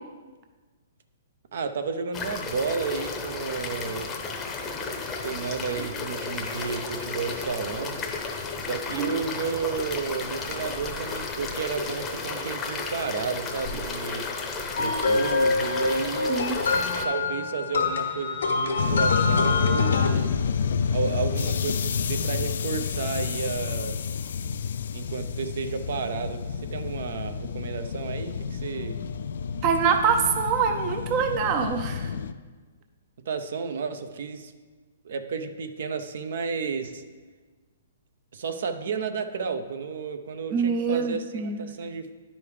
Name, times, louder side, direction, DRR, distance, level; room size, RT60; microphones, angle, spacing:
voice 1, 1.5-4.1 5.2-8.0 8.6-14.3 14.8-16.4 17.0-20.4 20.9-24.0 24.9-29.0 33.3-34.5 35.0-37.0 38.3-42.1, right 5 dB, 65° right, 8 dB, 0.7 m, -32 dB
sound 1, 2.1-17.1, left 4 dB, 15° left, 0.8 m, -33 dB
sound 2, 14.8-20.1, left 3 dB, 85° left, 1.2 m, -26 dB
voice 2, 16.3-16.6 29.6-32.1 40.5-41.6, right 6 dB, 30° right, 6 dB, 0.6 m, -25 dB
sound 3, 18.8-32.3, left 6 dB, 70° left, 0.4 m, -29 dB
9.6 x 5.3 x 4.9 m, 1.4 s
hypercardioid pair, 155°, 0 cm